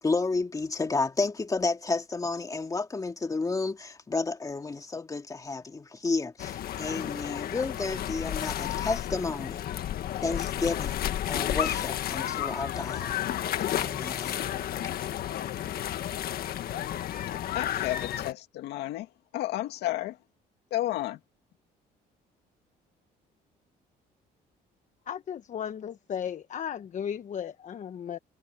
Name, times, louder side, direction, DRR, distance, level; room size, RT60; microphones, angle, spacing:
voice 1, 0.0-9.6 10.2-13.2 13.7-14.5, left 3 dB, 20° left, 2.4 m, -31 dB
sound 1, 6.4-18.3, left 11 dB, 65° left, 1.7 m, -32 dB
voice 2, 17.3-20.2 20.7-21.2, left 15 dB, 80° left, 2.5 m, -32 dB
voice 3, 25.1-28.2, left 8 dB, 45° left, 1.1 m, -35 dB
cardioid pair, 110°, 17 cm